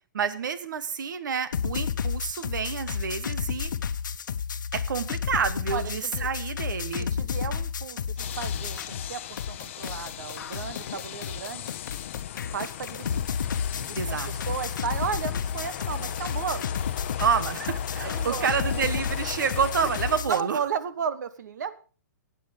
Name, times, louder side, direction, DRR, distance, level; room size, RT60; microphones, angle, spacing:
voice 1, 0.1-3.7 4.7-7.1 14.0-14.3 17.2-20.6, right 6 dB, 85° right, 13 dB, 1.3 m, -29 dB
sound 1, 1.5-9.1 9.4-20.4, left 7 dB, 90° left, 1.0 m, -31 dB
voice 2, 5.7-6.3 7.0-11.7 12.5-13.2 13.8-16.8 18.0-19.0 20.3-21.8, right 7 dB, 65° right, 13 dB, 1.4 m, -34 dB
sound 2, 8.2-20.2, left 11 dB, 40° left, 0.7 m, -38 dB
15.5 x 8.6 x 5.2 m, 0.38 s
hypercardioid pair, 175°, 10 cm